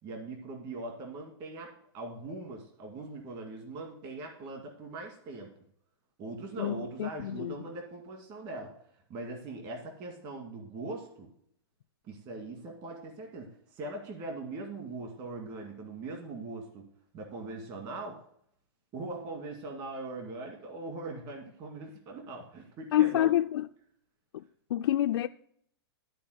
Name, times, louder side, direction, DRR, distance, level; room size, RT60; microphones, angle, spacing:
voice 1, 0.0-5.5 6.2-8.7 9.1-11.3 12.0-16.9 17.1-18.2 18.9-23.3, right 2 dB, 30° right, 2.1 m, -41 dB
voice 2, 6.6-7.5 22.9-23.6 24.3-24.4 24.7-25.3, left 13 dB, 70° left, 0.4 m, -27 dB
13.0 x 4.5 x 7.9 m
hypercardioid pair, 155°, 14 cm